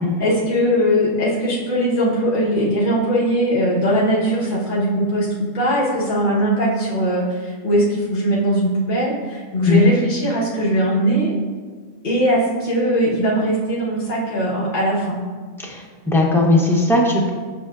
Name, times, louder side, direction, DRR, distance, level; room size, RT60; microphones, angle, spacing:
voice 1, 0.2-11.3 12.0-15.2, equal, 40° left, -7 dB, 1.2 m, -20 dB
voice 2, 15.6-17.3, left 2 dB, 5° left, -2 dB, 0.5 m, -18 dB
7.5 x 5.7 x 2.4 m, 1.5 s
omnidirectional pair, 1.4 m